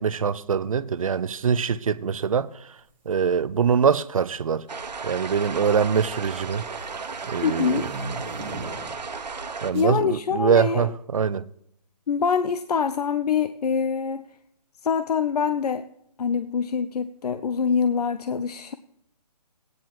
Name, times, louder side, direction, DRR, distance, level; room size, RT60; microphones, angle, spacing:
voice 1, 0.0-2.5 3.1-4.7 5.0-6.6 7.3-7.9 9.6-11.5, right 6 dB, 55° right, 0.4 m, -23 dB
sound 1, 2.8-3.1 4.0-4.5 4.8-9.1 9.7-10.0, right 2 dB, 20° right, 1.3 m, -40 dB
sound 2, 4.7-9.7, right 4 dB, 80° right, 1.2 m, -34 dB
voice 2, 7.4-7.9 9.7-10.9 12.1-14.2 14.8-15.9 16.2-18.7, left 6 dB, 65° left, 0.5 m, -24 dB
16.0 x 9.4 x 2.9 m
hypercardioid pair, 170°, 21 cm